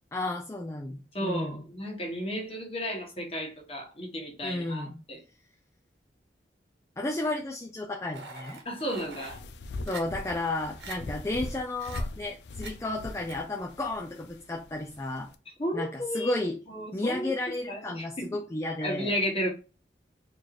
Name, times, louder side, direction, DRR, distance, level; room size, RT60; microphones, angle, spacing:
voice 1, 0.1-1.7 4.4-5.0 7.0-8.6 9.9-15.3 15.7-16.6 16.9-19.1, left 2 dB, 15° left, 0.4 m, -33 dB
voice 2, 1.1-5.2 8.6-9.4 15.6-16.4 16.7-17.3 17.7-18.3 18.8-19.5, equal, 35° left, 1.2 m, -33 dB
sound 1, 8.1-9.4 9.9-10.0 10.5-10.6 10.8-11.0 11.8-12.0 12.6-12.7 13.3-13.4, right 4 dB, 75° right, 1.1 m, -43 dB
sound 2, 8.9-15.4, left 2 dB, 80° left, 0.4 m, -41 dB
4.3 x 3.1 x 2.5 m
head